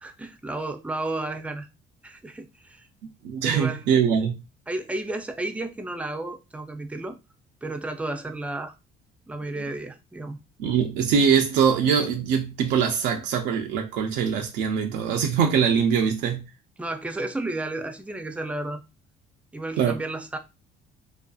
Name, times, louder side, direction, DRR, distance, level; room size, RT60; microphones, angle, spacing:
voice 1, 0.0-1.7 2.0-2.8 3.4-4.0 4.7-7.2 7.6-8.7 9.3-10.4 16.8-18.8 19.5-20.4, right 2 dB, 10° right, 0.4 m, -32 dB
voice 2, 3.2-4.3 10.6-16.5 19.8-20.0, right 7 dB, 85° right, 0.5 m, -22 dB
2.5 x 2.4 x 2.3 m
cardioid pair, 110°, 17 cm